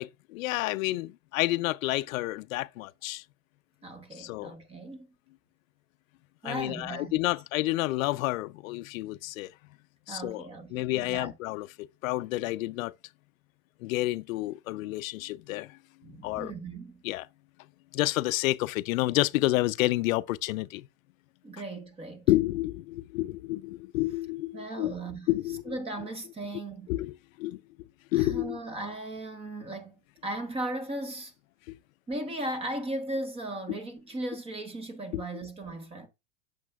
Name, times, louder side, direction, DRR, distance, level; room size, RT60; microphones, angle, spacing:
voice 1, 0.0-3.2 4.2-4.5 6.4-9.5 10.1-12.9 13.8-15.8 16.2-16.5 17.0-17.2 17.9-20.9 22.3-24.9 25.3-25.8 26.9-27.6 28.1-28.6 31.7-31.8 33.7-33.8 35.1-35.4, left 18 dB, 85° left, 0.5 m, -30 dB
voice 2, 3.8-5.1 6.4-7.1 10.1-11.3 16.0-17.0 21.4-22.3 24.5-25.3 25.7-26.9 28.1-29.9 30.2-31.3 32.1-36.1, right 1 dB, 15° right, 0.9 m, -37 dB
8.2 x 6.6 x 2.3 m
supercardioid pair, 155°, 39 cm